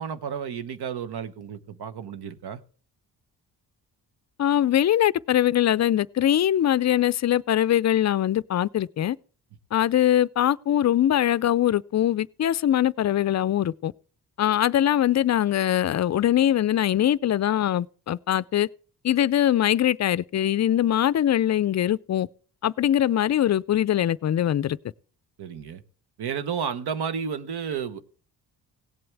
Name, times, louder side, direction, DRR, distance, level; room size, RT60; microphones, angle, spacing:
voice 1, 0.0-2.6 25.4-25.8 26.2-28.0, right 7 dB, 70° right, 1.1 m, -32 dB
voice 2, 4.4-9.2 9.7-13.9 14.4-18.7 19.0-22.3 22.6-24.8, left 11 dB, 45° left, 0.4 m, -22 dB
17.5 x 7.7 x 3.4 m
cardioid pair, 85°, 40 cm